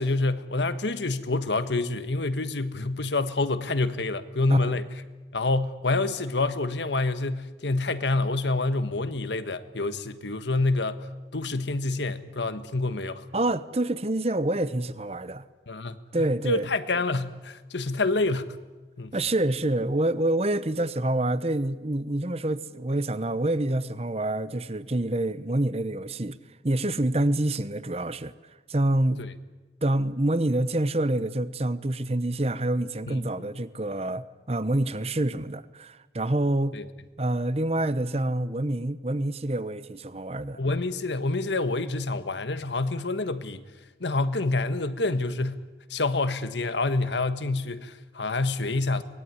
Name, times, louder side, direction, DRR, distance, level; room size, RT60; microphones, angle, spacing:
voice 1, 0.0-4.9 5.3-13.3 15.7-16.0 16.4-18.6 19.0-19.1 29.2-29.3 33.1-33.5 36.7-36.8 40.5-43.6 44.0-45.6 45.9-49.0, left 2 dB, 80° left, 1.4 m, -27 dB
voice 2, 13.3-15.4 16.1-16.7 19.1-26.4 26.6-28.3 28.7-29.2 29.8-36.7 37.2-40.6, right 1 dB, 35° right, 0.9 m, -27 dB
24.0 x 20.0 x 9.6 m
head